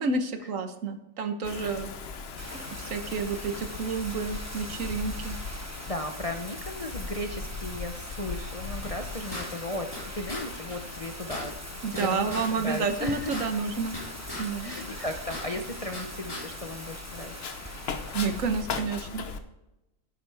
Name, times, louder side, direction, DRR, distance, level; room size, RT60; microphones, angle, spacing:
voice 1, 0.0-1.9 2.5-5.4 11.8-13.9 14.4-14.7 18.1-19.2, right 4 dB, 70° right, 7 dB, 1.4 m, -30 dB
Wind, 1.4-19.4, left 4 dB, 55° left, 1.0 m, -40 dB
Bathtub (filling or washing), 2.4-18.6, right 1 dB, 15° right, 1.0 m, -43 dB
voice 2, 5.9-11.6 11.9-13.6 14.6-17.4, left 1 dB, 35° left, 4 dB, 0.6 m, -36 dB
sound 1, 8.8-10.0 10.3-10.4 10.7-10.8 11.0-12.5 12.8-14.4 14.7-16.0 16.3-16.4, left 1 dB, 15° left, 4.4 m, -38 dB
11.0 x 10.0 x 3.4 m, 0.94 s
omnidirectional pair, 1.4 m